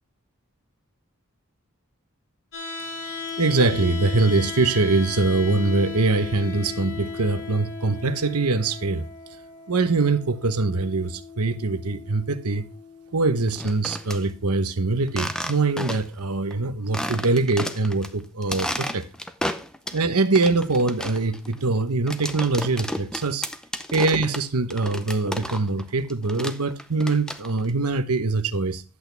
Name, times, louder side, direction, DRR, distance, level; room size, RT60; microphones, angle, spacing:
sound 1, 2.5-14.5, left 5 dB, 60° left, 2.7 m, -37 dB
voice 1, 3.4-9.1 9.7-12.6 13.1-19.1 19.9-23.5 23.9-28.8, right 3 dB, 90° right, 1.0 m, -23 dB
sound 2, 13.5-14.2 15.1-16.2 16.5-16.6 16.9-18.1 18.4-20.0 20.4-25.8 26.1-27.7, equal, 5° left, 0.6 m, -32 dB
11.5 x 8.4 x 3.3 m
head